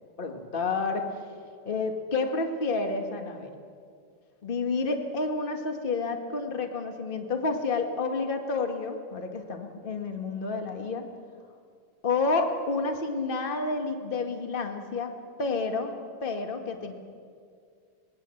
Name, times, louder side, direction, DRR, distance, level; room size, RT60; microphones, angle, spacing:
voice 1, 0.2-1.1 1.7-3.5 4.4-11.0 12.0-15.1 15.4-15.9 16.2-16.9, left 3 dB, 25° left, 5 dB, 1.9 m, -29 dB
26.0 x 21.0 x 7.9 m, 2.2 s
omnidirectional pair, 2.3 m